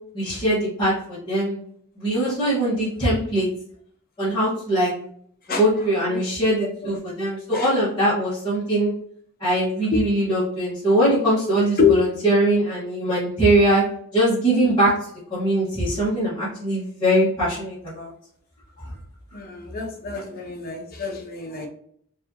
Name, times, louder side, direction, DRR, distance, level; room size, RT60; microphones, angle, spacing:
voice 1, 0.1-1.6 2.0-3.5 4.2-4.9 5.5-8.9 9.4-13.8 14.1-14.9 15.3-18.1, right 1 dB, 20° left, -12 dB, 1.6 m, -21 dB
voice 2, 19.3-21.7, left 5 dB, 45° left, 3 dB, 0.8 m, -25 dB
4.7 x 2.8 x 2.9 m, 0.64 s
head